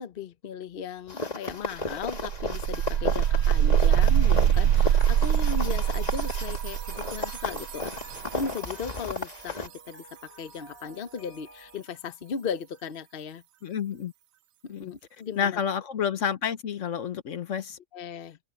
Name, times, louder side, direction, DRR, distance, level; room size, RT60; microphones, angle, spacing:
voice 1, 0.0-13.4 14.6-15.6 17.9-18.4, left 6 dB, 45° left, 1.0 m, -37 dB
sound 1, 0.7-11.8, equal, 50° right, 6.4 m, -54 dB
sound 2, 1.1-9.7, left 2 dB, 30° left, 1.7 m, -34 dB
sound 3, 1.5-1.6 1.9-8.7, right 10 dB, 85° right, 1.1 m, -24 dB
voice 2, 13.6-14.1 14.7-14.9 15.4-17.8, left 8 dB, 65° left, 1.2 m, -29 dB
omnidirectional pair, 1.4 m